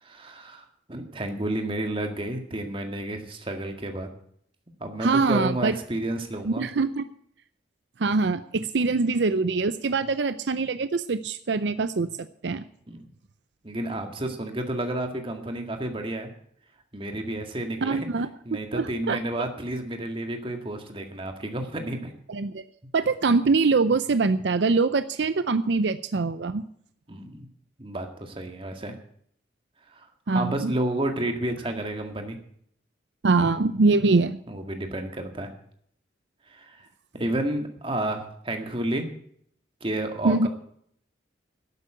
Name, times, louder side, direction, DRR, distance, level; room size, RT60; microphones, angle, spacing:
voice 1, 0.0-4.1 4.8-6.7 8.8-9.0 12.9-13.0 13.6-16.3 16.9-18.1 18.5-22.1 27.1-27.5 27.8-29.0 29.9-32.4 34.5-35.5 36.5-36.9 37.1-39.1 39.8-40.5, right 1 dB, 30° right, 5 dB, 1.9 m, -31 dB
voice 2, 5.0-5.7 6.4-7.1 8.0-12.1 12.4-12.6 17.8-19.2 22.3-22.6 22.9-26.7 30.3-30.7 33.2-34.4 40.2-40.5, right 3 dB, 75° right, 13 dB, 0.6 m, -23 dB
12.0 x 8.4 x 8.8 m, 0.65 s
head